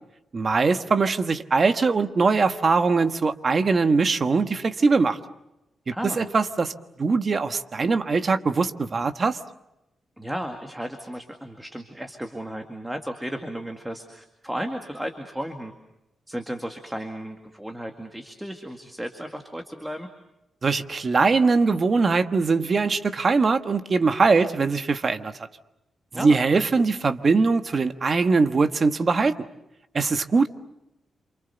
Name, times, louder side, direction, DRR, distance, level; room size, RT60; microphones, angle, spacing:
voice 1, 0.3-5.2 5.9-6.7 7.0-9.4 20.6-25.3 26.1-29.5 29.9-30.5, right 4 dB, 35° right, 8 dB, 1.4 m, -21 dB
voice 2, 5.9-6.3 10.2-15.7 16.3-20.1 26.1-26.4, equal, 5° right, 4 dB, 2.1 m, -34 dB
29.0 x 27.0 x 7.0 m, 0.90 s
wide cardioid pair, 150°, 0 cm